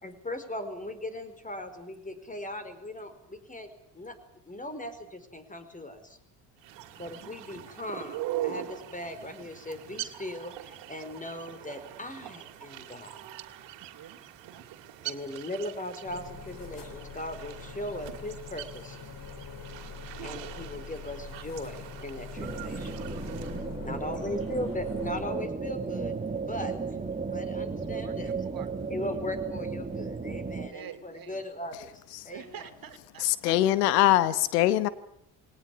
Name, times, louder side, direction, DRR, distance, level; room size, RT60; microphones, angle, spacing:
voice 1, 0.0-4.2 4.4-6.2 7.0-13.2 15.0-19.0 20.2-23.0 23.8-26.1 26.5-26.7 27.3-28.3 28.9-31.9 32.2-32.7, left 1 dB, 15° left, 11 dB, 4.7 m, -38 dB
sound 1, 6.6-23.6, right 13 dB, 65° right, 2.6 m, -42 dB
voice 2, 13.8-14.6 24.3-24.4 27.7-29.0 30.7-31.4 32.3-33.5, right 9 dB, 45° right, 9 dB, 2.7 m, -47 dB
sound 2, 16.0-25.3, left 5 dB, 45° left, 3.4 m, -43 dB
sound 3, 22.4-30.7, right 4 dB, 15° right, 2.3 m, -34 dB
voice 3, 33.2-34.9, left 14 dB, 85° left, 16 dB, 1.1 m, -22 dB
21.5 x 18.5 x 9.9 m, 0.72 s
hypercardioid pair, 70°, 46 cm